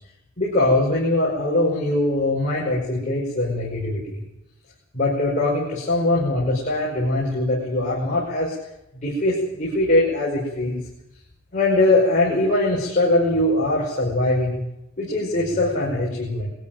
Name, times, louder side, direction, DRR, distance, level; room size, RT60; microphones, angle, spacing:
voice 1, 0.4-4.2 4.9-8.5 8.9-10.8 11.5-14.6 15.0-16.5, left 2 dB, 35° left, -5 dB, 5.5 m, -21 dB
22.5 x 13.5 x 9.2 m, 0.87 s
head